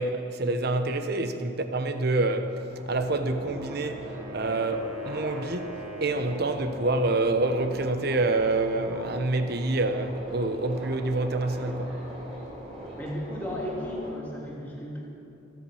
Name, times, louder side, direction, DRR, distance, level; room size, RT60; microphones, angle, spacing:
voice 1, 0.0-11.9, right 2 dB, 50° right, 0.9 m, -27 dB
Subway metro underground, 2.7-14.1, right 1 dB, 30° right, 4.1 m, -41 dB
Wind instrument woodwind instrument, 3.1-6.7, right 2 dB, 80° right, 3.2 m, -42 dB
voice 2, 12.9-15.0, equal, 10° left, 3.1 m, -34 dB
26.0 x 8.9 x 6.3 m
head